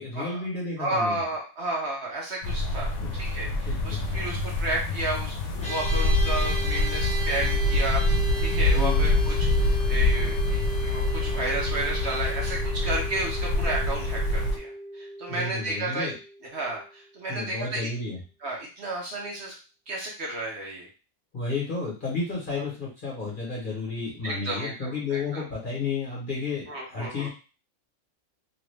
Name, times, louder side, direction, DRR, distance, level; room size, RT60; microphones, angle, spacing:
voice 1, 0.0-1.2 3.0-3.1 3.6-4.2 8.7-9.0 15.3-16.1 17.3-18.2 21.3-27.3, left 4 dB, 40° left, -4 dB, 1.2 m, -32 dB
voice 2, 0.8-8.0 8.4-16.1 16.5-17.9 18.4-19.5 19.9-20.9 22.5-22.6 24.2-25.4 26.7-27.3, right 2 dB, 55° right, -2 dB, 1.2 m, -32 dB
sound 1, 2.4-14.6, left 2 dB, 70° left, 1.0 m, -25 dB
sound 2, 5.6-17.1, right 1 dB, 10° left, 0.5 m, -36 dB
3.0 x 2.5 x 3.2 m, 0.33 s
omnidirectional pair, 1.4 m